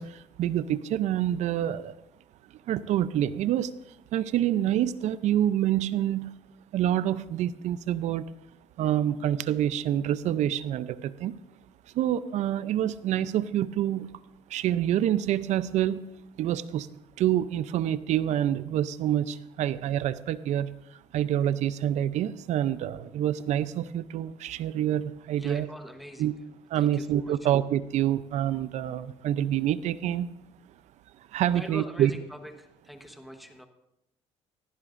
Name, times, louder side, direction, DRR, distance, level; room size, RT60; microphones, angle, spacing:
voice 1, 0.0-1.9 2.7-3.7 4.1-6.3 6.7-8.2 8.8-11.4 11.9-14.1 14.5-16.1 16.4-16.9 17.2-20.7 21.1-25.7 26.2-26.3 26.7-30.3 31.3-32.1, right 11 dB, 70° right, 15 dB, 0.6 m, -27 dB
voice 2, 25.4-26.4 26.7-27.5 31.5-33.7, equal, ahead, 5 dB, 1.2 m, -43 dB
17.0 x 15.0 x 2.6 m, 0.86 s
cardioid pair, 85°, 13 cm